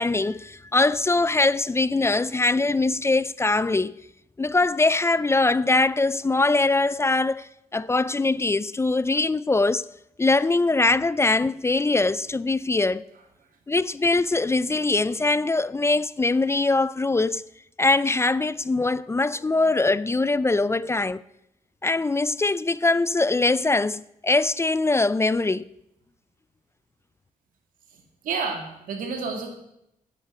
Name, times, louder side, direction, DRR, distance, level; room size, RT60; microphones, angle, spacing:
voice 1, 0.0-4.0 4.4-9.9 10.2-13.0 13.7-17.5 17.8-21.2 21.8-25.7, left 3 dB, 20° left, 0.4 m, -22 dB
voice 2, 27.9-29.5, right 5 dB, 90° right, 2.4 m, -31 dB
10.5 x 8.3 x 8.3 m
cardioid pair, 85°, 14 cm